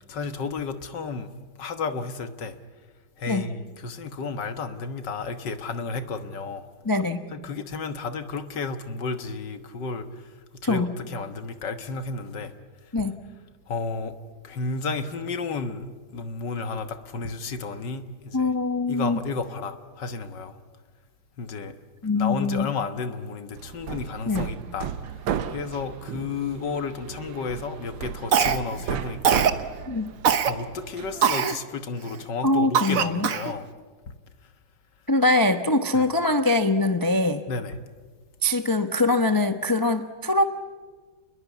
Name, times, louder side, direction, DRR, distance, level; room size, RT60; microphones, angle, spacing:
voice 1, 0.1-1.3 1.6-2.6 3.2-6.7 7.3-10.3 10.6-12.5 13.0-13.1 13.7-14.2 14.4-18.5 18.9-20.6 21.4-21.8 22.1-25.2 25.5-29.4 30.4-33.7 34.1-34.2 35.9-36.1 37.5-37.8, left 4 dB, 65° left, 9 dB, 1.9 m, -32 dB
voice 2, 6.8-7.2 10.6-10.9 12.9-13.2 18.3-19.2 22.0-22.7 24.3-24.5 29.9-30.1 32.4-33.3 35.1-37.4 38.4-40.4, left 2 dB, 30° left, 8 dB, 0.4 m, -23 dB
Hammer, 23.6-31.4, right 8 dB, 75° right, 1.7 m, -34 dB
Cough, 28.3-28.8 29.2-29.6 30.2-30.5 31.2-31.6 32.1-32.2 32.7-33.5, right 7 dB, 50° right, 1.3 m, -22 dB
28.5 x 21.5 x 8.4 m, 1.5 s
omnidirectional pair, 2.2 m